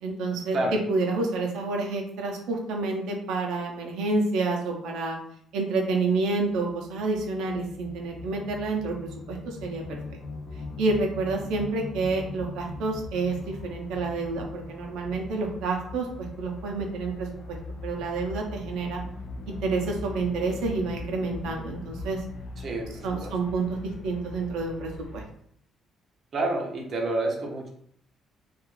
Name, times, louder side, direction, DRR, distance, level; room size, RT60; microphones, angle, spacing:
voice 1, 0.0-5.2 5.5-9.0 9.3-10.0 10.8-17.6 17.8-19.0 19.5-22.2 23.0-23.8 24.0-25.2, right 3 dB, 90° right, 1 dB, 0.5 m, -29 dB
sound 1, 6.0-25.2, left 2 dB, 50° left, 0.3 m, -40 dB
voice 2, 22.6-23.3 26.3-27.7, right 2 dB, 35° right, 0 dB, 0.5 m, -29 dB
2.3 x 2.3 x 3.0 m, 0.66 s
cardioid pair, 165°, 0 cm